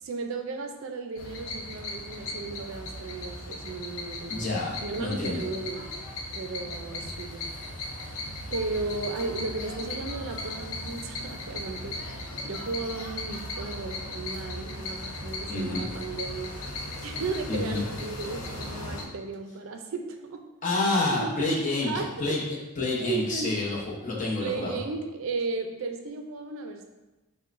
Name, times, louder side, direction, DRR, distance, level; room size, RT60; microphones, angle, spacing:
voice 1, 0.0-4.5 4.8-5.9 6.3-7.5 8.5-16.7 17.0-20.4 21.1-22.4 23.0-23.5 24.4-26.8, right 4 dB, 70° right, 5 dB, 0.4 m, -35 dB
sound 1, 1.1-19.0, left 2 dB, 80° left, 0.7 m, -37 dB
voice 2, 4.3-5.5 15.5-15.9 17.5-17.8 20.6-24.8, left 2 dB, 40° left, -3 dB, 0.9 m, -29 dB
6.5 x 2.2 x 2.5 m, 1.1 s
head